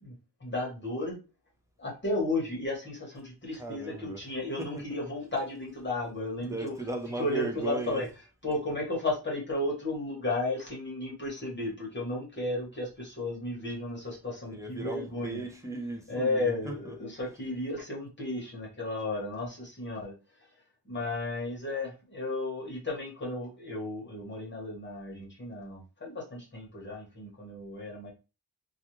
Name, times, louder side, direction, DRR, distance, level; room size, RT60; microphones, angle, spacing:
voice 1, 0.0-1.2 1.8-6.7 7.2-8.1 8.4-15.4 16.1-20.1 20.8-28.1, left 2 dB, 30° left, 0.9 m, -34 dB
voice 2, 3.6-4.2 4.6-4.8 6.4-8.0 14.5-16.9, right 3 dB, 10° right, 0.4 m, -37 dB
2.3 x 2.3 x 2.9 m
wide cardioid pair, 170°, 40 cm